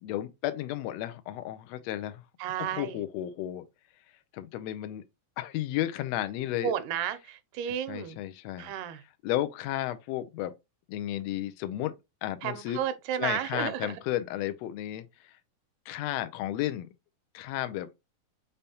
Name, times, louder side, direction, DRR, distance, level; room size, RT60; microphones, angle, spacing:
voice 1, 0.0-2.2 2.6-3.6 4.3-5.0 5.4-6.7 7.9-8.7 9.2-10.5 10.9-11.9 12.2-12.8 13.2-15.1 15.9-16.9 17.3-17.9, left 13 dB, 80° left, 1.5 m, -33 dB
voice 2, 2.4-3.0 6.6-8.2 8.6-9.0 12.4-14.0, right 10 dB, 90° right, 2.1 m, -32 dB
5.4 x 3.5 x 2.8 m
omnidirectional pair, 3.5 m